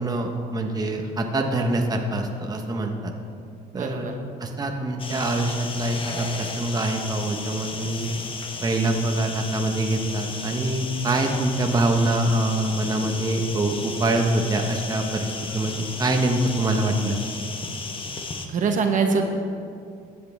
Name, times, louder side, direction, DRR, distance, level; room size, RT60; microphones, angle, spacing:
voice 1, 0.0-3.1 3.7-4.0 4.4-8.1 8.6-17.2, right 1 dB, 25° right, 2 dB, 1.0 m, -24 dB
voice 2, 3.7-4.1 18.5-19.3, right 5 dB, 50° right, 4 dB, 1.1 m, -23 dB
sound 1, 5.0-18.5, left 4 dB, 30° left, 1.1 m, -34 dB
15.0 x 8.5 x 3.5 m, 2.4 s
cardioid pair, 110°, 17 cm